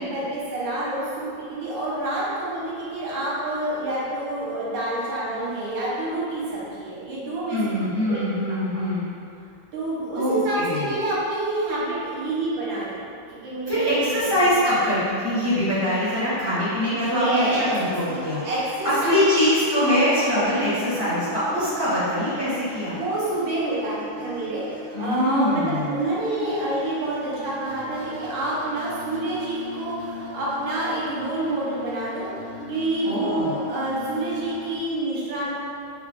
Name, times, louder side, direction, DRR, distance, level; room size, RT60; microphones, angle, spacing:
voice 1, 0.0-7.6 8.1-8.2 8.5-8.8 9.7-13.1 13.4-14.3 17.0-17.7 18.0-19.2 22.8-32.3 32.7-35.5, right 2 dB, 90° right, -7 dB, 1.6 m, -28 dB
voice 2, 7.5-9.1 10.1-10.9 13.7-18.4 18.8-23.0 24.9-26.0 33.0-33.5, left 1 dB, 25° left, -12 dB, 0.6 m, -23 dB
sound 1, 16.6-34.8, left 1 dB, 70° right, 1.1 m, -39 dB
4.3 x 2.5 x 2.3 m, 2.5 s
omnidirectional pair, 2.1 m